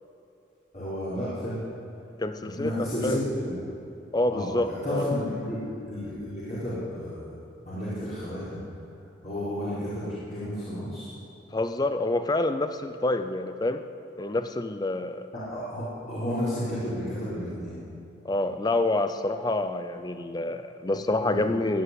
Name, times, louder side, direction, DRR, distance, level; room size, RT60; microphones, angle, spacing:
voice 1, 0.7-1.6 2.4-3.6 4.3-7.3 7.7-8.6 9.2-11.1 15.3-17.7 21.2-21.4, left 1 dB, 40° left, -11 dB, 4.5 m, -32 dB
voice 2, 2.2-3.2 4.1-5.1 11.5-13.8 14.2-15.2 18.2-21.8, left 2 dB, 20° left, 9 dB, 0.5 m, -27 dB
17.0 x 8.5 x 9.8 m, 2.7 s
head